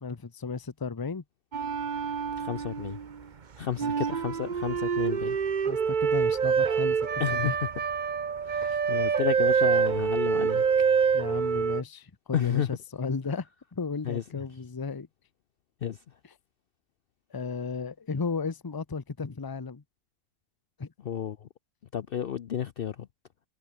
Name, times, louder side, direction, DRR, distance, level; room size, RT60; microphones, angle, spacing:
voice 1, 0.0-1.2 3.8-4.0 5.7-7.6 8.6-8.8 11.1-15.1 16.2-16.3 17.3-19.8 20.8-20.9, left 4 dB, 20° left, 0.7 m, -34 dB
sound 1, 1.5-3.2 3.8-11.8, right 6 dB, 40° right, 0.9 m, -26 dB
voice 2, 2.4-3.0 3.6-5.4 7.2-7.5 8.4-10.6 12.3-12.7 14.1-14.2 15.8-16.0 21.0-21.5 21.9-23.1, left 9 dB, 55° left, 0.7 m, -31 dB
omnidirectional pair, 1.4 m